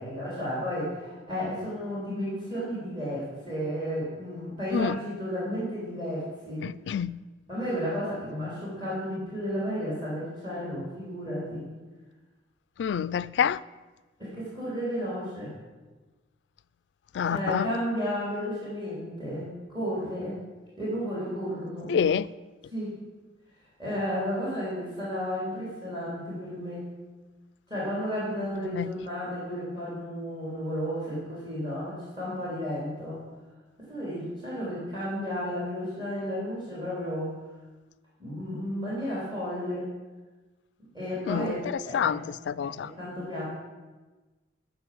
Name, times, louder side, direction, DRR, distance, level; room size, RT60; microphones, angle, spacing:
voice 1, 0.0-6.7 7.5-11.6 14.2-15.5 17.2-20.4 20.8-21.9 22.7-22.9 23.8-26.8 27.7-33.2 33.9-37.3 38.2-39.9 40.9-42.1 42.6-43.5, equal, 25° right, 3.4 m, -33 dB
voice 2, 6.6-7.2 12.8-13.6 17.1-17.7 21.9-22.3 28.7-28.9 41.3-41.6 41.9-42.2 42.5-42.9, left 7 dB, 75° left, 0.3 m, -27 dB
12.0 x 4.7 x 7.6 m
head